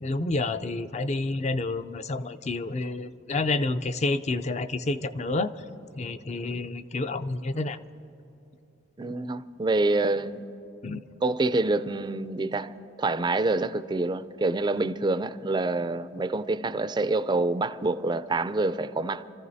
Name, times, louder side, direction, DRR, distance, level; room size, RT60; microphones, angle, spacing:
voice 1, 0.0-5.5 5.9-7.8 10.8-11.0, left 2 dB, 35° left, 0.5 m, -29 dB
voice 2, 9.0-10.4 11.2-12.7 13.0-19.2, right 2 dB, 25° right, 0.4 m, -26 dB
28.5 x 14.5 x 2.7 m
head